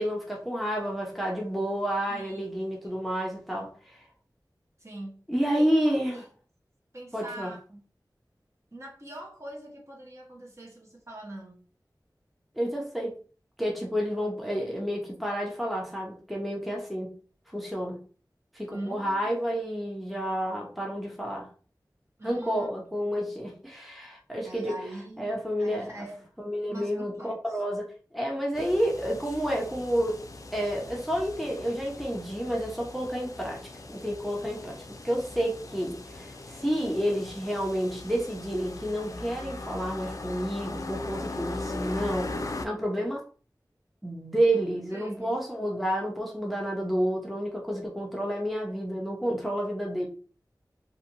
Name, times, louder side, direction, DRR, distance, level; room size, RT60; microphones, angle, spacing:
voice 1, 0.0-4.0 5.3-6.2 7.1-7.5 12.6-13.2 13.6-17.1 17.5-18.0 18.5-21.5 22.2-24.8 25.2-25.9 26.4-30.2 30.5-33.6 33.9-42.3 42.6-43.2 44.0-50.1, equal, ahead, -1 dB, 0.7 m, -30 dB
voice 2, 2.1-2.5 4.8-5.2 5.6-5.8 6.1-6.3 6.9-7.8 8.7-11.7 18.7-19.6 22.2-22.7 24.4-26.3 26.7-27.4 44.9-45.4, right 1 dB, 40° right, -1 dB, 1.0 m, -42 dB
sound 1, 28.5-42.7, left 2 dB, 50° left, 0.4 m, -39 dB
2.5 x 2.5 x 2.9 m, 0.40 s
wide cardioid pair, 45°, 8 cm